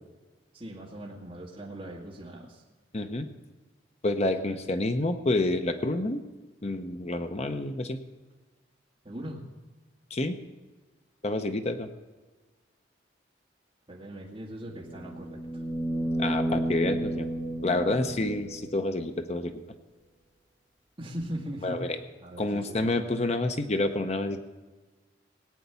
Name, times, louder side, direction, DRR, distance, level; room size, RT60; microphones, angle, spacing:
voice 1, 0.5-2.6 4.5-4.6 9.0-9.4 13.9-15.6 21.0-21.8 22.2-23.0, right 1 dB, 30° right, -4 dB, 1.9 m, -40 dB
voice 2, 2.9-3.3 4.0-6.2 6.6-8.0 10.1-10.4 11.2-11.9 16.2-17.3 17.6-19.5 21.6-22.0 22.4-24.4, left 2 dB, 35° left, 7 dB, 0.7 m, -28 dB
sound 1, 14.7-18.8 21.2-21.3, right 1 dB, 15° left, 1.4 m, -31 dB
18.5 x 9.2 x 6.9 m, 1.3 s
head